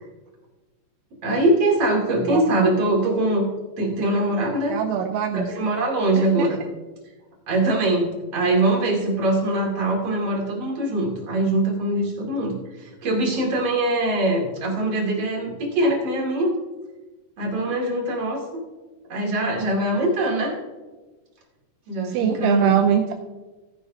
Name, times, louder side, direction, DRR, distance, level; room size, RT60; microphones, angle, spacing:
voice 1, 1.2-3.4 3.8-4.8 5.3-6.6 7.5-16.5 17.4-18.4 19.1-20.5 21.9-22.8, right 1 dB, 45° right, -2 dB, 2.3 m, -22 dB
voice 2, 2.3-2.7 4.7-5.5 6.2-6.5 22.1-23.1, right 8 dB, 85° right, 4 dB, 2.8 m, -23 dB
16.5 x 9.7 x 2.7 m, 1.2 s
omnidirectional pair, 6.0 m